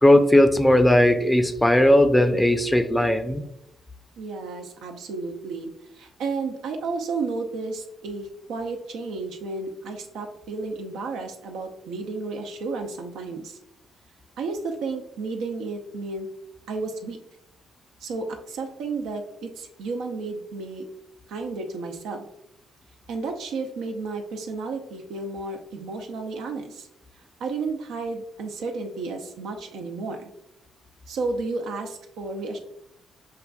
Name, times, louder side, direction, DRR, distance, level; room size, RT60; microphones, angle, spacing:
voice 1, 0.0-3.4, left 1 dB, 10° left, 7 dB, 0.5 m, -17 dB
voice 2, 4.2-13.6 14.4-16.3 16.7-17.2 18.0-20.8 21.3-22.3 23.1-26.9 27.4-30.3 31.1-32.6, right 3 dB, 80° right, 4 dB, 0.6 m, -32 dB
6.6 x 2.5 x 2.3 m, 0.77 s
cardioid pair, 70°, 0 cm